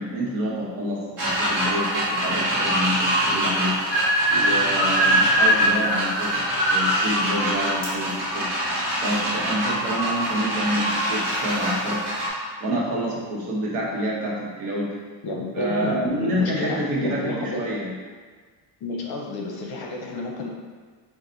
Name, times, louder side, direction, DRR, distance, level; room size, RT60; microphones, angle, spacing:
voice 1, 0.0-6.4 6.7-8.5 9.0-12.3 12.6-14.9 15.5-17.9, equal, 80° right, -4 dB, 1.4 m, -28 dB
sound 1, 1.2-12.3, right 1 dB, 40° right, 1.4 m, -23 dB
voice 2, 15.2-17.6 18.8-20.5, left 2 dB, 50° left, 0 dB, 0.7 m, -31 dB
4.5 x 2.5 x 3.9 m, 1.5 s
cardioid pair, 170°, 48 cm